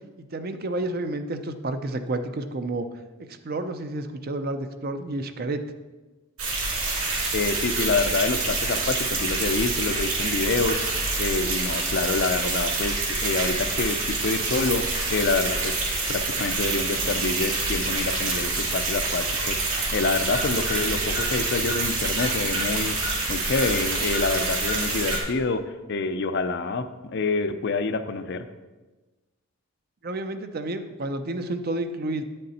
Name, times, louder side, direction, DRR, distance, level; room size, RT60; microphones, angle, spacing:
voice 1, 0.3-2.9 3.2-5.6 30.0-32.2, right 2 dB, 45° right, 9 dB, 0.5 m, -30 dB
sound 1, 6.4-25.2, right 3 dB, 85° right, 2.5 m, -27 dB
voice 2, 7.3-10.8 11.2-15.8 16.1-25.6 25.9-28.5, left 3 dB, 55° left, 10 dB, 0.5 m, -27 dB
9.2 x 6.7 x 4.2 m, 1.2 s
head